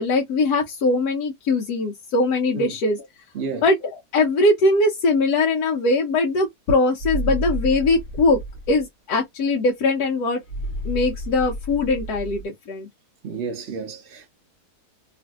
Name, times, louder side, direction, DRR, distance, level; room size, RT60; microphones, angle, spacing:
voice 1, 0.0-3.1 3.6-8.4 8.7-10.4 10.8-12.9, left 2 dB, 75° left, 1.2 m, -21 dB
voice 2, 3.3-3.6 13.2-14.3, right 5 dB, 60° right, 0.8 m, -31 dB
sound 1, 7.0-8.8 10.5-12.4, equal, 55° left, 0.9 m, -30 dB
3.1 x 2.5 x 2.3 m
omnidirectional pair, 1.7 m